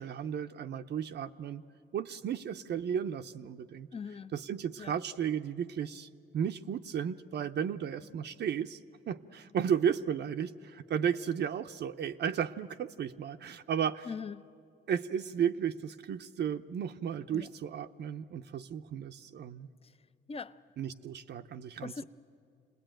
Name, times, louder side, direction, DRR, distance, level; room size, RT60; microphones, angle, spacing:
voice 1, 0.0-1.6 1.9-3.9 4.3-6.1 6.3-8.8 9.1-14.1 14.9-19.7 20.8-22.0, right 8 dB, 60° right, 0.6 m, -34 dB
voice 2, 3.9-4.3 4.8-4.9 14.1-14.5 17.3-17.5 20.3-20.5 21.8-22.0, left 5 dB, 30° left, 0.6 m, -40 dB
28.0 x 20.0 x 9.0 m
cardioid pair, 90°, 20 cm